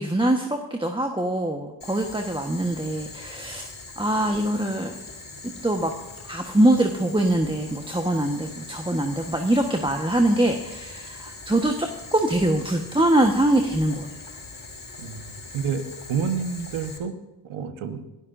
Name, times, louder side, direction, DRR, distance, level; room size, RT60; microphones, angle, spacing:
voice 1, 0.0-3.7 4.0-4.9 5.4-5.9 6.2-14.1, right 1 dB, 10° right, 3 dB, 1.2 m, -23 dB
Boiling, 1.8-17.0, left 3 dB, 40° left, 4.9 m, -41 dB
voice 2, 15.0-15.8 16.1-17.1 17.4-18.1, right 6 dB, 75° right, 8 dB, 1.4 m, -29 dB
25.5 x 12.5 x 2.6 m, 1.1 s
supercardioid pair, 50°, 50 cm